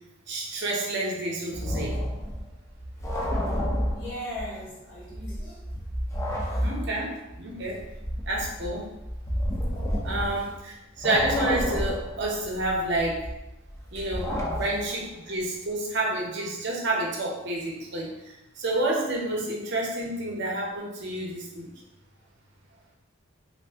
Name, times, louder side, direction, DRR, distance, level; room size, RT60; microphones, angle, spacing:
voice 1, 0.3-2.0 6.6-7.8 8.3-8.9 10.0-13.2 13.9-14.3 14.6-18.1 18.6-21.7, right 2 dB, 55° right, -2 dB, 0.7 m, -29 dB
sound 1, 1.5-4.6 4.9-10.7 11.0-15.1, equal, 15° left, 0.4 m, -31 dB
voice 2, 3.9-5.7 6.9-7.0 10.3-10.5 13.7-14.1 15.2-15.3, equal, 55° left, -6 dB, 1.2 m, -40 dB
2.6 x 2.5 x 3.4 m, 0.93 s
head